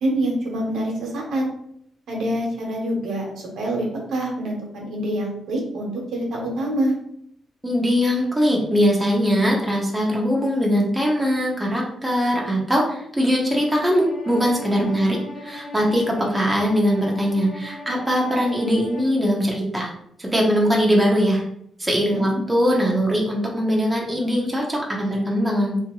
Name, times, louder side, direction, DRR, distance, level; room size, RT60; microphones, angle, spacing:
voice 1, 0.0-1.5 2.1-3.3 3.6-6.9 14.8-15.2 22.1-22.4, right 1 dB, 80° right, -1 dB, 0.9 m, -26 dB
voice 2, 7.6-19.9 20.2-21.4 21.8-25.8, equal, 10° right, -3 dB, 0.8 m, -21 dB
Bowed string instrument, 13.5-19.2, left 2 dB, 45° left, 1.3 m, -38 dB
2.8 x 2.6 x 2.9 m, 0.69 s
cardioid pair, 90°, 0 cm